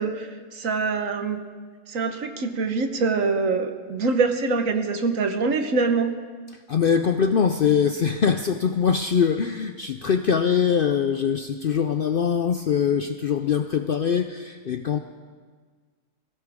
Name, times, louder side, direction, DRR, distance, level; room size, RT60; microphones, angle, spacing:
voice 1, 0.0-1.4 1.9-6.1, right 4 dB, 70° right, 6 dB, 1.5 m, -24 dB
voice 2, 6.5-15.0, left 7 dB, 60° left, 8 dB, 0.6 m, -23 dB
20.5 x 16.5 x 3.6 m, 1.5 s
omnidirectional pair, 1.5 m